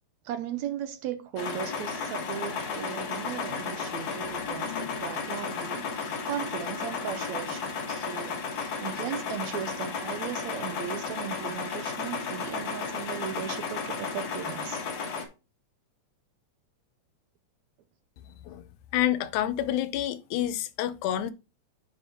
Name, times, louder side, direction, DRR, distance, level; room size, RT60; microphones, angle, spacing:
voice 1, 0.2-14.9, right 10 dB, 80° right, 1.9 m, -37 dB
sound 1, 1.4-15.2, left 5 dB, 60° left, 2.5 m, -33 dB
voice 2, 18.9-21.3, left 12 dB, 85° left, 2.1 m, -28 dB
9.8 x 4.7 x 3.0 m
omnidirectional pair, 3.4 m